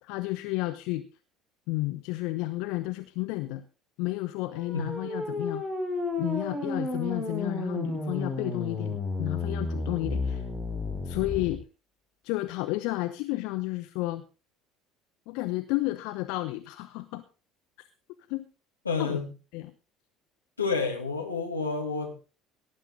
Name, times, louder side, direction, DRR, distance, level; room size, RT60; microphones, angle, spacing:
voice 1, 0.0-1.1 1.7-3.6 4.0-5.6 6.2-10.4 11.0-11.6 12.2-14.2 15.3-17.2 18.3-18.5 19.0-19.2 19.5-19.7, left 19 dB, 60° left, 10 dB, 0.9 m, -31 dB
sound 1, 4.4-11.5, left 2 dB, 10° left, 5.0 m, -32 dB
voice 2, 18.8-19.3 20.6-22.3, left 4 dB, 85° left, 2 dB, 2.6 m, -29 dB
18.0 x 10.5 x 3.7 m, 0.33 s
figure-of-eight pair, 60°, 0 cm